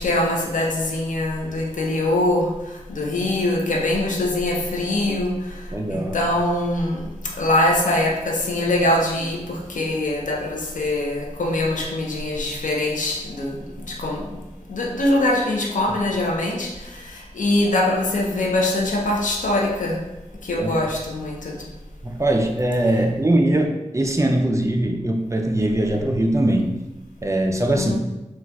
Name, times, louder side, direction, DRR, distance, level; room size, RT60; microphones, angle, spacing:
voice 1, 0.0-5.6 5.9-7.1 7.4-14.4 14.7-20.0 20.4-21.7 27.8-27.9, left 1 dB, 90° left, 0 dB, 0.5 m, -23 dB
voice 2, 5.7-6.2 20.6-20.7 22.0-26.7 27.2-27.9, right 1 dB, 25° right, 2 dB, 0.4 m, -21 dB
3.9 x 2.3 x 2.2 m, 1.0 s
cardioid pair, 45°, 13 cm